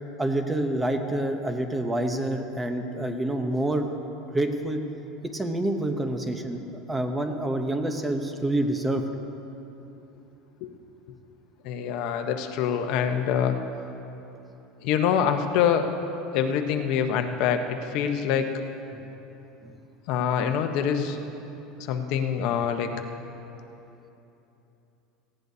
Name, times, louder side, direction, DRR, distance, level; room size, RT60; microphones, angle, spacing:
voice 1, 0.2-3.9 4.3-4.8 5.2-9.0 18.9-19.0 19.6-19.7, right 1 dB, 10° right, 5 dB, 0.8 m, -27 dB
voice 2, 11.6-13.6 14.8-15.9 16.3-18.5 20.1-21.2 21.8-22.9, left 8 dB, 60° left, 6 dB, 0.9 m, -25 dB
18.5 x 16.0 x 2.8 m, 3.0 s
supercardioid pair, 150°, 0 cm